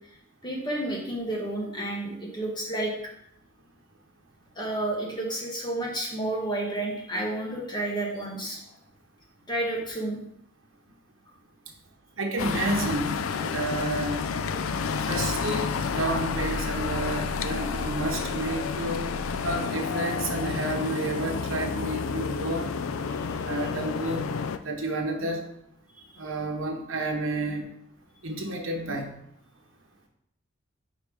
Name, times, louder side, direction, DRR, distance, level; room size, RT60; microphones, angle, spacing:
voice 1, 0.4-2.9 4.5-8.6 9.5-10.2 23.2-23.3, right 1 dB, 20° left, -2 dB, 1.4 m, -30 dB
voice 2, 12.2-14.2 15.1-19.1 19.4-22.7 23.4-24.3 24.6-25.5 26.2-27.7 28.2-29.2, right 2 dB, 80° right, 1 dB, 1.2 m, -30 dB
sound 1, 12.4-24.6, left 5 dB, 90° left, 0.4 m, -30 dB
5.2 x 4.5 x 4.9 m, 0.75 s
head